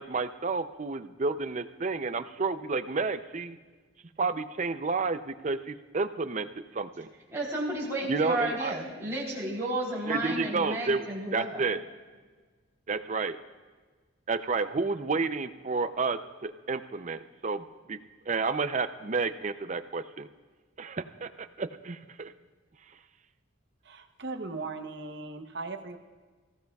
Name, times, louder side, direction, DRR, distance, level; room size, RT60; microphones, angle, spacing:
voice 1, 0.0-3.6 4.2-6.5 6.7-7.1 8.1-8.7 10.1-11.8 12.9-13.4 14.3-18.0 18.3-20.3 20.8-22.3 22.8-23.0, right 4 dB, 35° right, 11 dB, 0.5 m, -31 dB
voice 2, 7.3-11.6, right 1 dB, 15° right, -7 dB, 3.4 m, -32 dB
voice 3, 23.8-26.0, right 3 dB, 55° right, 6 dB, 0.9 m, -38 dB
24.5 x 15.5 x 2.4 m, 1.4 s
head